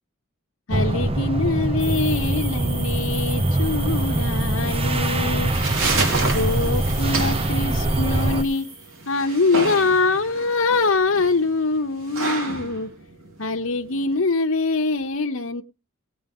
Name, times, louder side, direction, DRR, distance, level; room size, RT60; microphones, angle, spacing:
voice 1, 0.7-5.5 6.3-8.7 9.1-12.9 13.4-15.6, left 3 dB, 80° left, 3 dB, 1.0 m, -23 dB
sound 1, 0.7-8.4, right 1 dB, 30° right, 0.8 m, -23 dB
sound 2, 1.8-9.1, right 3 dB, 60° right, 6.7 m, -36 dB
sound 3, 5.2-14.2, right 3 dB, 85° right, 4.1 m, -30 dB
18.5 x 8.7 x 3.6 m, 0.31 s
head